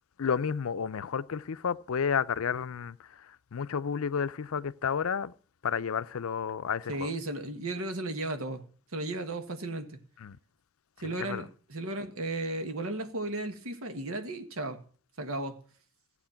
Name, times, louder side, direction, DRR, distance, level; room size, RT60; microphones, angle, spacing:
voice 1, 0.2-3.3 3.5-5.3 5.6-7.1 10.2-10.4 11.2-11.4, left 6 dB, 75° left, 0.5 m, -31 dB
voice 2, 6.9-8.6 8.9-10.0 11.0-14.8 15.2-15.6, right 2 dB, 80° right, 1.6 m, -35 dB
14.5 x 8.4 x 5.7 m
head